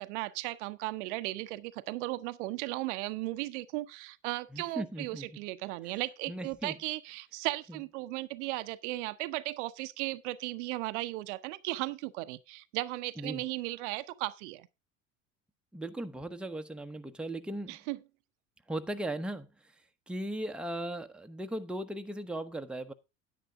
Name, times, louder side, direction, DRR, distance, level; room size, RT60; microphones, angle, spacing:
voice 1, 0.0-14.7 17.7-18.0, right 19 dB, 65° right, 0.7 m, -36 dB
voice 2, 4.5-5.4 5.8-5.9 6.3-6.8 7.7-7.8 13.2-13.4 15.7-17.8 18.7-19.7 20.1-22.9, right 1 dB, ahead, 0.9 m, -38 dB
10.0 x 9.4 x 3.6 m
hypercardioid pair, 80°, 39 cm